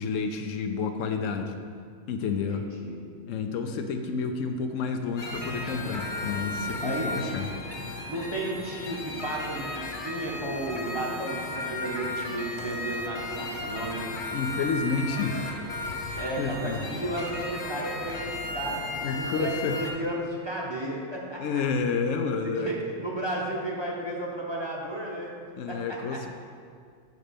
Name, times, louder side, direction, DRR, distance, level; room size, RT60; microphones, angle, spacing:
voice 1, 0.0-1.6 2.1-2.6 3.3-7.5 14.3-15.7 16.0-16.9 19.0-19.8 21.4-22.7 25.6-26.3, left 5 dB, 85° left, 6 dB, 1.0 m, -30 dB
voice 2, 2.3-3.0 6.8-7.2 8.1-14.1 16.2-21.6 22.4-25.3 25.7-25.8 26.1-26.3, right 1 dB, 25° right, -3 dB, 0.9 m, -33 dB
sound 1, 5.2-19.9, left 2 dB, 45° left, 0.8 m, -35 dB
8.0 x 4.2 x 5.1 m, 2.1 s
omnidirectional pair, 1.3 m